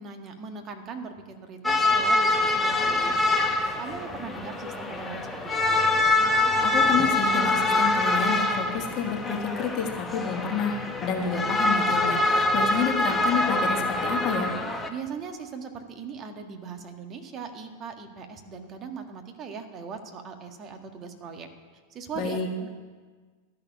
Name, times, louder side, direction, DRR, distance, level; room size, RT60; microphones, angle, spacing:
voice 1, 0.0-3.4 3.8-5.9 14.9-21.5 21.9-22.7, right 5 dB, 30° right, 5 dB, 1.7 m, -39 dB
sound 1, 1.6-14.9, left 2 dB, 5° left, 1.1 m, -25 dB
voice 2, 6.6-14.5 22.1-22.5, left 6 dB, 35° left, 2 dB, 1.7 m, -29 dB
13.0 x 6.7 x 9.8 m, 1.5 s
figure-of-eight pair, 90°, 0 cm